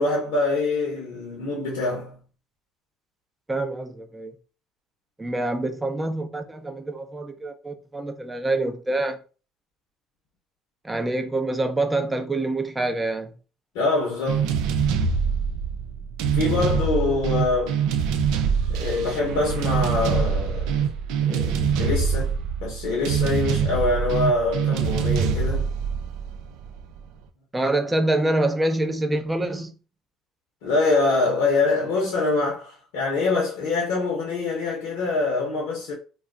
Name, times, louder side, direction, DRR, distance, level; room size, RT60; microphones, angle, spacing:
voice 1, 0.0-2.2 13.7-14.5 16.3-17.8 18.7-20.9 21.2-22.3 22.6-25.7 30.6-36.0, left 3 dB, 75° left, 0.8 m, -24 dB
voice 2, 3.5-4.3 5.2-9.2 10.8-13.3 27.5-29.7, right 2 dB, 15° right, 0.6 m, -26 dB
sound 1, 14.3-27.0, right 6 dB, 75° right, 0.4 m, -24 dB
2.3 x 2.1 x 3.6 m
hypercardioid pair, 70°, 0 cm